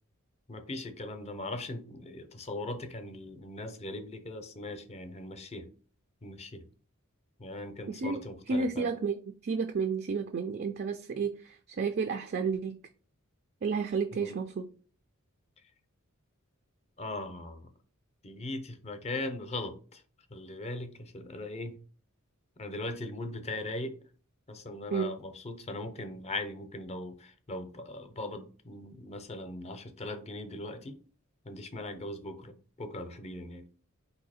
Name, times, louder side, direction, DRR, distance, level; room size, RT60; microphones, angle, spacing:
voice 1, 0.5-5.7 6.2-6.6 7.4-8.9 11.1-11.2 14.1-14.4 17.0-17.7 18.2-20.0 20.3-21.8 22.6-24.0 24.5-31.0 31.4-33.7, left 2 dB, 30° left, 0.6 m, -39 dB
voice 2, 7.9-8.2 8.5-9.2 9.4-12.8 13.6-14.7 24.9-25.1, right 5 dB, 50° right, 0.4 m, -31 dB
4.2 x 2.7 x 4.2 m
head